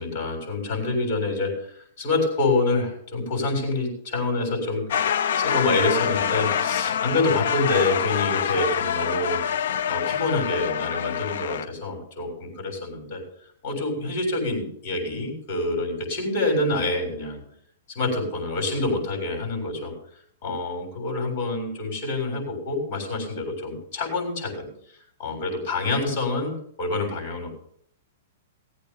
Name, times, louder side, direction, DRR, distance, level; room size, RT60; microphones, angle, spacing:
voice 1, 0.0-4.8 5.4-9.4 9.9-13.2 13.6-17.4 17.9-19.9 20.4-24.7 25.2-27.5, left 2 dB, 35° left, 3 dB, 7.2 m, -26 dB
sound 1, 4.9-11.7, left 8 dB, 60° left, 0.8 m, -25 dB
18.5 x 8.4 x 5.7 m, 0.64 s
hypercardioid pair, 170°, 0 cm